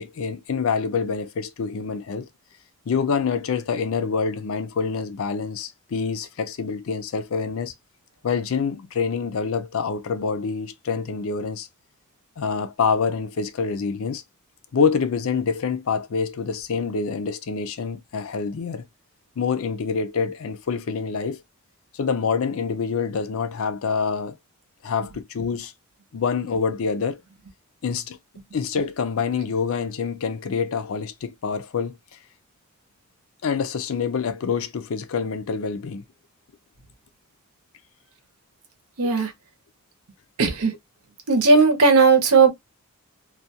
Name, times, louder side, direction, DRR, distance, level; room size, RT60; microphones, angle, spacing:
voice 1, 0.0-2.3 2.9-7.7 8.2-11.7 12.4-14.2 14.7-18.9 19.4-21.4 21.9-24.4 24.8-25.7 26.1-27.2 27.8-28.2 28.5-32.0 33.4-36.0 39.0-39.3, left 5 dB, 65° left, 0.4 m, -26 dB
voice 2, 39.0-39.3 40.4-40.7 41.3-42.5, right 4 dB, 75° right, 0.8 m, -16 dB
2.3 x 2.2 x 2.7 m
head